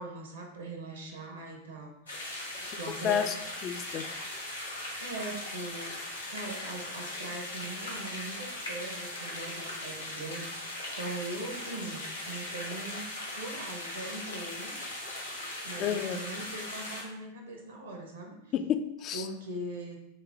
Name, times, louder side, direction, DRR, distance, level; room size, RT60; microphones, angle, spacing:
voice 1, 0.0-2.3 2.8-3.3 5.0-6.0 6.3-13.0 13.4-14.8 15.6-18.5 19.1-20.0, right 2 dB, 70° right, 1 dB, 1.2 m, -41 dB
sound 1, 2.1-17.0, left 1 dB, 80° left, 1.2 m, -39 dB
voice 2, 2.6-3.4 3.6-4.1 11.4-11.5 15.8-16.2 18.5-19.3, left 9 dB, 35° left, 8 dB, 0.3 m, -31 dB
6.3 x 2.1 x 3.9 m, 0.80 s
figure-of-eight pair, 90°, 0 cm